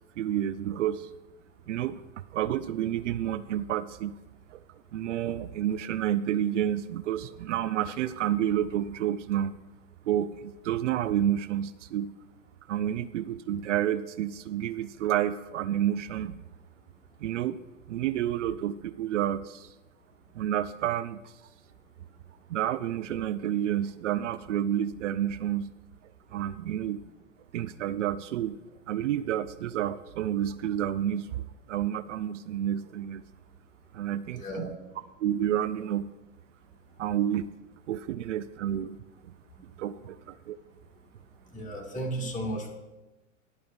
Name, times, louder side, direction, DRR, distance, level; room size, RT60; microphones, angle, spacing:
voice 1, 0.2-1.1 1.7-2.0 2.3-4.1 4.5-4.6 4.9-9.6 10.1-12.1 12.7-16.3 17.2-17.6 17.9-19.7 20.4-21.2 22.5-25.7 26.3-27.0 27.5-28.6 28.9-33.2 33.9-34.7 35.2-36.1 37.0-37.5 37.9-39.0 39.8-40.6, right 11 dB, 65° right, 14 dB, 0.5 m, -29 dB
voice 2, 34.4-34.7 41.5-42.7, right 1 dB, 20° left, 0 dB, 2.2 m, -34 dB
11.5 x 5.0 x 6.8 m, 1.1 s
figure-of-eight pair, 95°, 38 cm